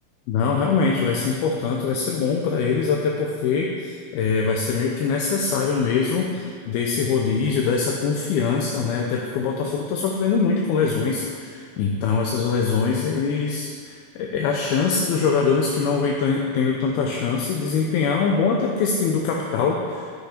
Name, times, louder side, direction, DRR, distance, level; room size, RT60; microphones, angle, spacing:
voice 1, 0.3-20.1, left 5 dB, 75° left, 0 dB, 2.4 m, -23 dB
15.5 x 5.5 x 5.0 m, 2.1 s
omnidirectional pair, 5.0 m